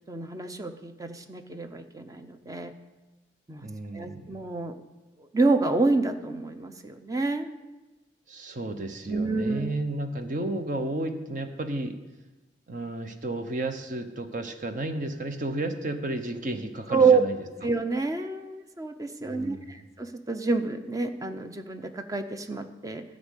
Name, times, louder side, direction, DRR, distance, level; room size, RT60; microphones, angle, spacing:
voice 1, 0.1-2.7 3.5-3.6 3.9-4.8 5.3-7.6 9.1-9.7 16.9-17.2 17.6-23.0, right 4 dB, 20° right, 8 dB, 0.7 m, -27 dB
voice 2, 3.6-4.4 8.3-11.9 12.7-17.4 19.2-19.8, right 2 dB, 45° right, 7 dB, 0.9 m, -32 dB
12.0 x 5.2 x 8.2 m, 1.1 s
head